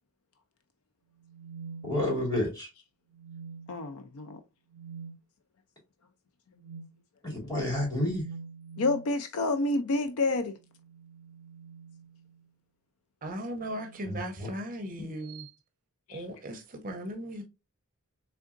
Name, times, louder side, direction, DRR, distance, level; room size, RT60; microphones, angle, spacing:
sound 1, 1.2-2.5 3.1-3.9 4.7-5.2 6.6-7.0 8.1-9.1 10.6-12.5 13.6-14.0 15.2-15.5, right 5 dB, 85° right, 0.4 m, -46 dB
voice 1, 1.8-2.7 7.2-8.3 14.1-14.5, left 1 dB, 15° left, 2.5 m, -30 dB
voice 2, 3.7-4.4 8.8-10.5 16.1-16.3, left 2 dB, 70° left, 0.5 m, -29 dB
voice 3, 13.2-15.4 16.1-17.4, right 1 dB, 40° right, 0.6 m, -37 dB
3.7 x 3.4 x 2.5 m
head